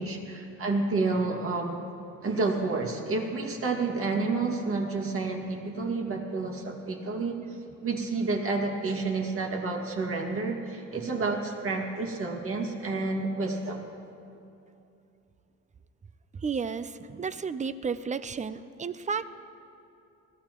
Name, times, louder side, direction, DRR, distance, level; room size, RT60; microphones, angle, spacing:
voice 1, 0.0-1.8 2.2-7.4 7.8-13.8, right 3 dB, 45° right, 1 dB, 2.1 m, -30 dB
voice 2, 16.4-19.3, right 5 dB, 25° right, 14 dB, 0.5 m, -32 dB
20.5 x 14.5 x 3.0 m, 2.7 s
cardioid pair, 90°, 30 cm